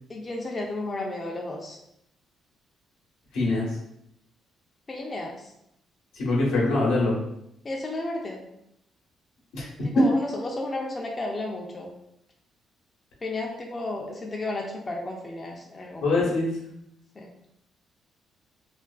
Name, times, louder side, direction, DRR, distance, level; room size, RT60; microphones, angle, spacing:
voice 1, 0.1-1.8 4.9-5.5 7.6-8.5 9.8-11.9 13.2-16.1 17.2-17.3, left 2 dB, 30° left, 0 dB, 0.4 m, -33 dB
voice 2, 3.3-3.7 6.1-7.2 9.5-9.6 10.0-10.1 16.0-16.5, left 2 dB, 85° left, -4 dB, 0.8 m, -23 dB
2.4 x 2.3 x 2.3 m, 0.78 s
cardioid pair, 90°, 0 cm